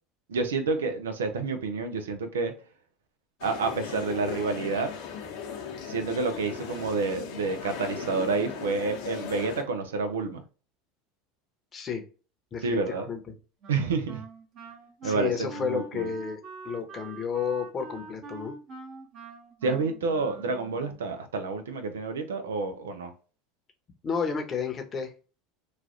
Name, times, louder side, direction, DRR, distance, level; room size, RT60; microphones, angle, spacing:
voice 1, 0.3-2.5 3.4-4.9 5.8-10.4 12.6-13.1 13.7-14.3 15.0-16.1 19.6-23.1, right 4 dB, 85° right, 0.6 m, -29 dB
sound 1, 3.4-9.6, left 7 dB, 70° left, 0.9 m, -37 dB
voice 2, 11.7-12.0 12.5-13.2 15.0-16.4 16.6-18.5 24.0-25.1, left 6 dB, 35° left, 0.9 m, -31 dB
Wind instrument woodwind instrument, 13.6-21.0, right 3 dB, 50° right, 1.1 m, -44 dB
3.1 x 2.4 x 2.5 m
hypercardioid pair, 85°, 0 cm